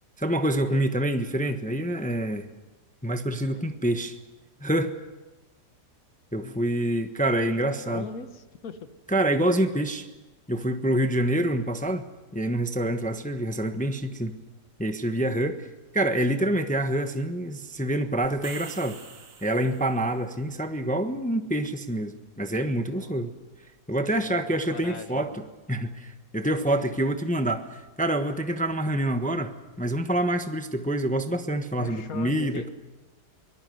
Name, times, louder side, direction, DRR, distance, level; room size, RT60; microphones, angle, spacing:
voice 1, 0.2-2.5 3.0-4.2 4.6-4.9 6.3-8.1 9.1-10.1 10.5-12.0 12.3-14.3 14.8-15.7 15.9-19.0 19.4-23.3 23.9-29.5 29.8-32.7, right 1 dB, 5° left, 7 dB, 0.9 m, -26 dB
voice 2, 6.4-6.7 7.6-8.9 22.8-23.4 24.0-24.4 24.7-25.5 26.6-26.7 31.8-32.7, left 6 dB, 55° left, 9 dB, 1.8 m, -41 dB
sound 1, 18.2-20.2, right 6 dB, 55° right, 1.7 m, -45 dB
24.0 x 20.0 x 7.9 m, 1.1 s
omnidirectional pair, 1.8 m